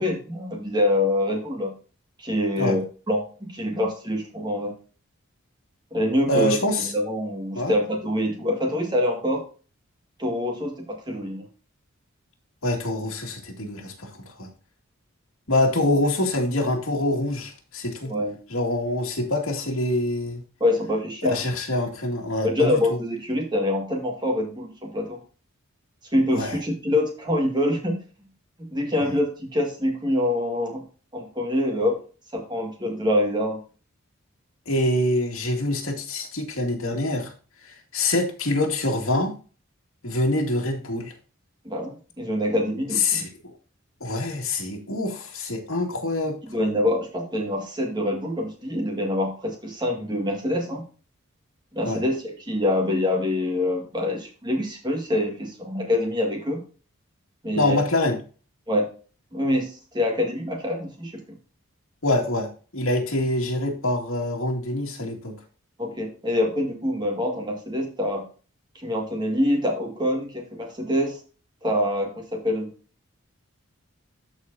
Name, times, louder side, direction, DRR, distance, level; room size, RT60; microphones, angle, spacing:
voice 1, 0.0-1.7 2.2-4.7 5.9-9.4 10.2-11.5 18.0-18.4 20.6-21.4 22.4-25.2 26.1-28.0 28.6-30.8 31.1-32.0 32.3-33.6 41.7-43.2 46.5-50.8 51.7-56.6 57.4-57.8 58.7-58.9 59.3-61.4 65.8-68.3 68.8-71.2 71.6-72.7, left 1 dB, 20° right, 2 dB, 1.9 m, -25 dB
voice 2, 6.3-6.9 7.6-7.7 12.6-14.5 15.5-18.1 18.5-20.4 21.2-22.8 26.3-26.6 29.0-29.1 34.7-37.3 37.6-39.3 40.0-41.1 43.0-43.3 44.0-46.4 51.9-52.0 57.6-58.2 62.0-65.4, left 1 dB, 70° left, 1 dB, 2.3 m, -25 dB
13.5 x 4.8 x 2.7 m, 0.36 s
head